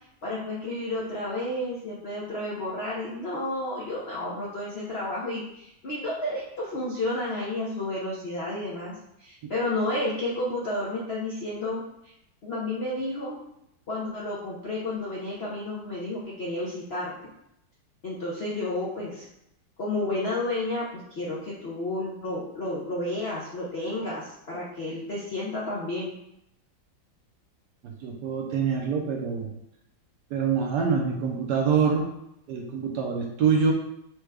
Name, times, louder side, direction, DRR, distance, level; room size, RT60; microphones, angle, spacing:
voice 1, 0.2-11.8 12.4-13.4 13.9-17.1 18.0-19.3 19.8-20.8 21.1-26.2, left 2 dB, 90° left, -5 dB, 0.5 m, -31 dB
voice 2, 27.8-29.5 30.3-32.1 32.5-33.7, right 6 dB, 70° right, 1 dB, 1.0 m, -25 dB
4.6 x 2.2 x 4.7 m, 0.79 s
omnidirectional pair, 2.2 m